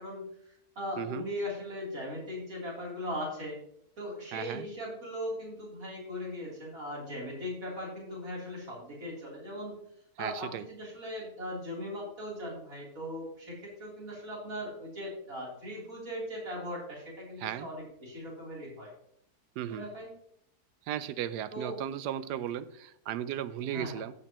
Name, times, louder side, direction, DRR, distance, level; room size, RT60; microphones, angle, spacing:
voice 1, 0.0-3.6 4.0-9.7 10.2-18.9 19.7-20.1 21.5-21.8 23.6-24.0, left 1 dB, 55° right, -4 dB, 3.9 m, -39 dB
voice 2, 1.0-1.3 4.3-4.7 10.2-10.6 17.4-17.7 19.6-19.9 20.9-24.1, right 11 dB, 85° right, 15 dB, 1.2 m, -36 dB
15.0 x 6.4 x 3.0 m, 0.71 s
omnidirectional pair, 1.7 m